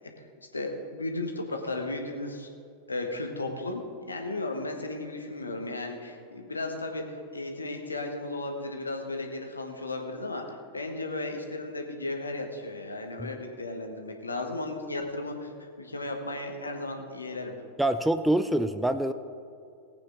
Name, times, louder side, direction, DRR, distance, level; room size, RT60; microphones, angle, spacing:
voice 1, 0.5-2.5 2.9-10.4 10.7-17.5, left 2 dB, 80° left, 3 dB, 1.5 m, -35 dB
voice 2, 17.8-19.1, right 1 dB, 5° right, 11 dB, 0.5 m, -25 dB
19.0 x 8.7 x 3.9 m, 2.5 s
figure-of-eight pair, 90°, 0 cm